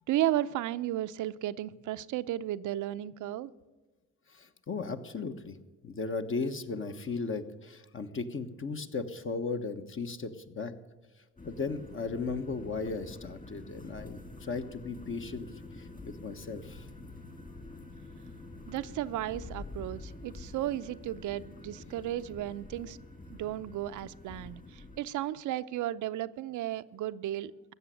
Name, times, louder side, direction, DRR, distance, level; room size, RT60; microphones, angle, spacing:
voice 1, 0.1-3.5 18.7-23.0 23.3-27.7, right 13 dB, 75° right, 13 dB, 0.6 m, -34 dB
voice 2, 4.3-5.6 5.8-10.7 11.4-15.5 15.8-16.9, left 4 dB, 45° left, 8 dB, 1.3 m, -36 dB
sound 1, 11.4-25.0, left 2 dB, 30° left, 2.6 m, -47 dB
15.5 x 6.9 x 9.9 m, 1.2 s
cardioid pair, 90°, 30 cm